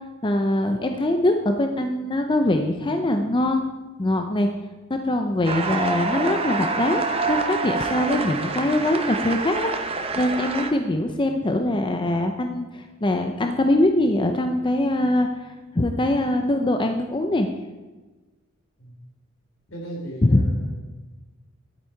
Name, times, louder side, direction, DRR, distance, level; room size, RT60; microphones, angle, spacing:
voice 1, 0.2-3.6 4.0-4.5 4.9-17.5 20.2-20.4, left 1 dB, 25° left, 5 dB, 0.6 m, -23 dB
sound 1, 5.5-10.7, right 3 dB, 30° right, 0.9 m, -27 dB
voice 2, 19.7-20.8, right 1 dB, 75° left, -2 dB, 3.7 m, -36 dB
11.5 x 8.4 x 4.5 m, 1.2 s
head